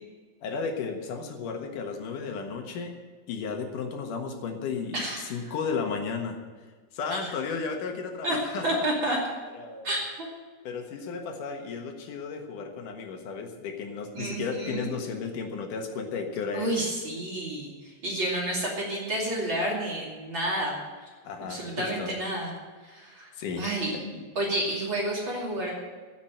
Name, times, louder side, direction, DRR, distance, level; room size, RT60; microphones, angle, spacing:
voice 1, 0.4-2.9 3.3-6.4 6.9-8.9 9.5-9.9 10.6-16.7 21.2-22.1 23.4-23.7 23.9-24.2, left 5 dB, 90° left, 4 dB, 3.1 m, -34 dB
voice 2, 4.9-5.3 7.1-7.3 8.2-8.4 8.6-9.2 9.8-10.3 14.1-14.9 16.5-20.8 21.0-21.1 21.5-22.5 22.8-23.3 23.6-23.9 24.3-25.7, right 1 dB, 40° right, -3 dB, 3.2 m, -30 dB
15.0 x 7.3 x 8.9 m, 1.4 s
omnidirectional pair, 3.6 m